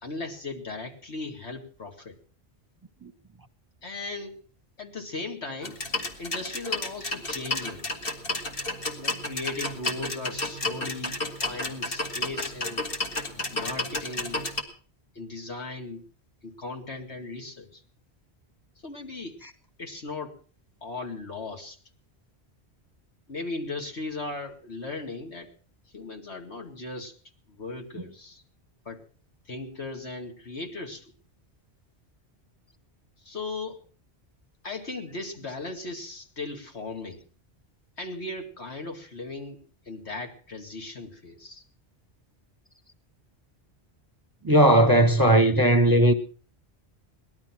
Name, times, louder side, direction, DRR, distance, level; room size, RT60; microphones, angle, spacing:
voice 1, 0.0-2.1 3.8-4.4 4.8-5.8 6.2-7.9 9.0-12.8 13.5-14.4 15.1-16.0 16.4-17.8 18.8-19.4 19.8-20.3 20.8-21.8 23.3-25.5 25.9-27.1 27.5-28.4 28.9-29.0 29.5-31.1 33.2-33.8 34.6-37.2 38.0-39.6 39.9-41.6, left 3 dB, 80° left, 2.6 m, -37 dB
sound 1, 5.6-14.6, left 2 dB, 55° left, 2.3 m, -32 dB
voice 2, 44.4-46.1, right 1 dB, 20° right, 0.8 m, -17 dB
19.0 x 12.5 x 5.9 m
omnidirectional pair, 1.1 m